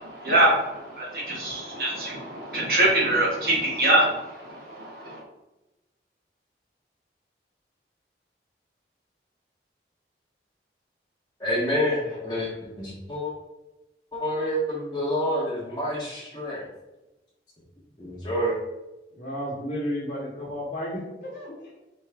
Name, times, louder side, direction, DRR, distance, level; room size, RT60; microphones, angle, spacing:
voice 1, 0.0-5.2, right 1 dB, 55° right, -5 dB, 1.4 m, -24 dB
voice 2, 11.4-12.5 12.8-13.3 14.1-16.7 18.0-18.6, equal, 20° left, -8 dB, 0.9 m, -28 dB
voice 3, 19.2-21.8, equal, 50° left, -6 dB, 1.1 m, -33 dB
4.4 x 3.0 x 3.4 m, 1.0 s
head